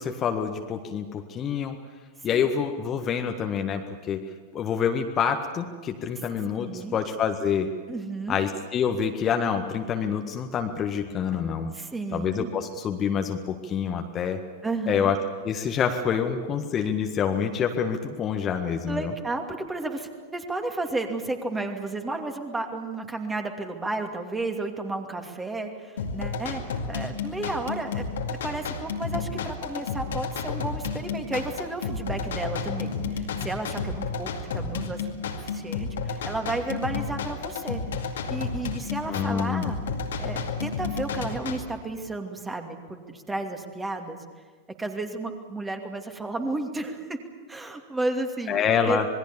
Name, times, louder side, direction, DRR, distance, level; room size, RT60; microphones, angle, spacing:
voice 1, 0.0-1.8 2.2-4.2 4.5-7.7 8.3-11.7 12.1-14.4 14.9-15.2 15.4-19.1 39.1-39.7 48.5-49.1, left 7 dB, 30° left, 5 dB, 1.6 m, -27 dB
voice 2, 6.6-7.0 7.9-8.4 11.7-12.5 14.6-15.1 18.8-26.6 26.9-35.1 35.3-39.8 40.2-44.2 44.8-47.2 47.5-48.6 48.9-49.0, right 2 dB, 10° right, 4 dB, 2.6 m, -32 dB
sound 1, 26.0-41.6, left 4 dB, 65° left, 2.3 m, -31 dB
27.0 x 21.0 x 7.2 m, 1.5 s
figure-of-eight pair, 90°, 0 cm